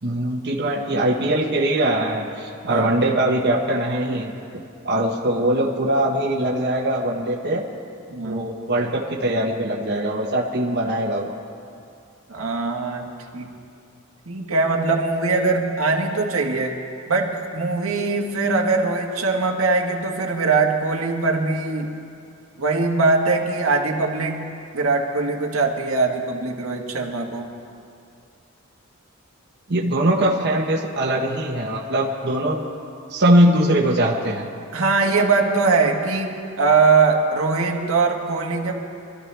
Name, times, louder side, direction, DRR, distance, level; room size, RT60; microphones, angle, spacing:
voice 1, 0.0-7.7 8.2-11.4 29.7-32.6 33.1-34.5, right 1 dB, 55° right, -1 dB, 1.2 m, -21 dB
voice 2, 8.1-8.5 12.3-13.1 13.3-13.5 14.3-16.8 17.1-21.9 22.6-24.5 24.7-27.5 34.7-38.7, right 3 dB, 85° right, 0 dB, 1.5 m, -21 dB
24.5 x 13.0 x 3.4 m, 2.5 s
head